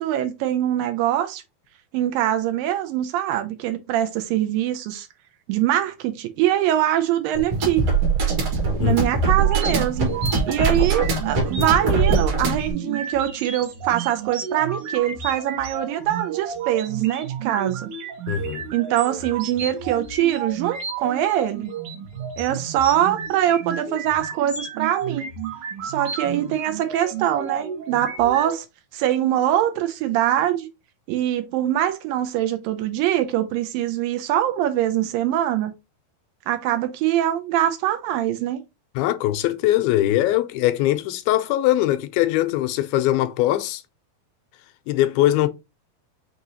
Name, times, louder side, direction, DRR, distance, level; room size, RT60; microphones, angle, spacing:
voice 1, 0.0-1.4 1.9-5.1 5.5-7.8 8.8-10.1 10.5-17.9 18.7-21.7 22.4-25.3 25.8-28.7 28.9-30.7 31.1-35.7 36.5-38.6, right 12 dB, 80° right, 2.1 m, -23 dB
sound 1, 7.3-12.7, right 4 dB, 50° right, 1.8 m, -22 dB
sound 2, 9.3-28.6, right 6 dB, 65° right, 2.4 m, -32 dB
voice 2, 18.3-18.7 39.0-43.8 44.9-45.5, left 14 dB, 85° left, 2.3 m, -21 dB
6.0 x 2.8 x 2.7 m
omnidirectional pair, 4.3 m